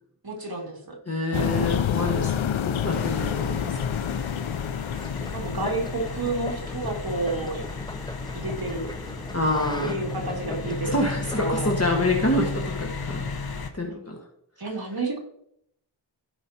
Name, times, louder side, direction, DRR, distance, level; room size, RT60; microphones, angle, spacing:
voice 1, 0.2-0.9 5.3-7.6 8.3-8.9 9.8-11.1 11.4-11.7 14.6-15.2, right 2 dB, 50° right, 0 dB, 2.5 m, -30 dB
voice 2, 1.1-4.3 9.3-9.9 10.9-14.2, left 1 dB, 30° left, 0 dB, 1.6 m, -27 dB
sound 1, 1.3-6.3, left 9 dB, 75° left, 0.6 m, -28 dB
sound 2, 2.9-13.7, left 4 dB, 50° left, 0.9 m, -34 dB
sound 3, 4.9-11.7, left 1 dB, 10° left, 0.6 m, -38 dB
15.5 x 5.5 x 2.8 m, 0.72 s
wide cardioid pair, 50°, 47 cm